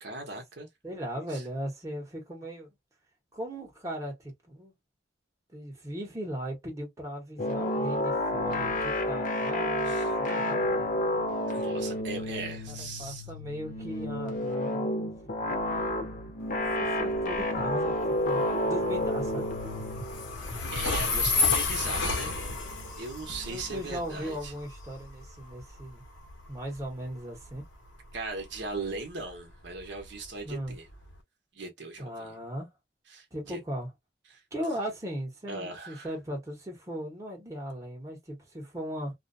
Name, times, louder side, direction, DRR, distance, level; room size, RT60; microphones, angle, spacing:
voice 1, 0.0-0.7 1.3-1.4 9.8-10.1 11.5-13.3 20.7-22.5 23.0-24.5 28.1-30.9 31.5-32.3 33.1-33.6 34.3-34.4 35.5-36.1, right 3 dB, 70° right, 0.9 m, -38 dB
voice 2, 0.8-2.7 3.3-4.7 5.5-11.0 12.7-14.9 16.5-19.5 23.5-26.0 26.5-27.6 30.4-30.8 32.0-32.7 33.3-33.9 34.5-39.1, equal, 15° right, 1.1 m, -38 dB
sound 1, 7.4-23.9, left 1 dB, 45° left, 0.8 m, -31 dB
Train, 16.4-31.2, left 4 dB, 85° left, 0.9 m, -33 dB
2.5 x 2.2 x 2.5 m
head